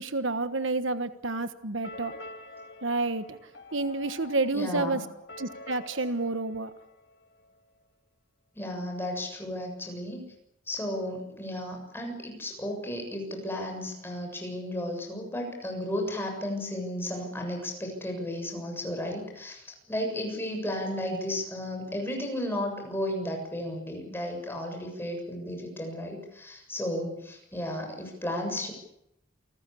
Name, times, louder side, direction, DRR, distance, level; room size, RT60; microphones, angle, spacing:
voice 1, 0.0-2.1 2.8-3.4 3.7-5.0 5.4-6.7, right 3 dB, 65° right, 11 dB, 1.3 m, -29 dB
sound 1, 1.8-7.6, left 2 dB, 50° left, 3.2 m, -47 dB
voice 2, 4.5-5.0 8.5-10.2 10.7-28.7, left 1 dB, 10° left, 2 dB, 7.2 m, -34 dB
28.5 x 19.5 x 8.6 m, 0.82 s
head